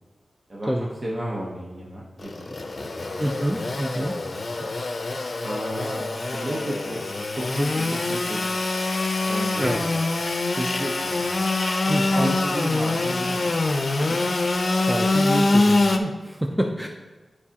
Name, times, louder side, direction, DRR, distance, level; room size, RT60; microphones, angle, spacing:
voice 1, 0.5-3.1 3.9-4.7 5.4-6.0 6.3-7.0 7.3-8.4 9.3-10.0 10.5-11.3 11.8-13.5, right 1 dB, 35° right, -4 dB, 0.9 m, -33 dB
Engine / Sawing, 2.2-16.0, left 2 dB, 45° left, 0.6 m, -24 dB
voice 2, 3.2-4.1 9.6-9.8 11.9-12.4 14.0-14.3 14.8-16.9, equal, 5° right, 2 dB, 0.5 m, -27 dB
11.0 x 4.8 x 2.8 m, 1.3 s
wide cardioid pair, 130°, 0 cm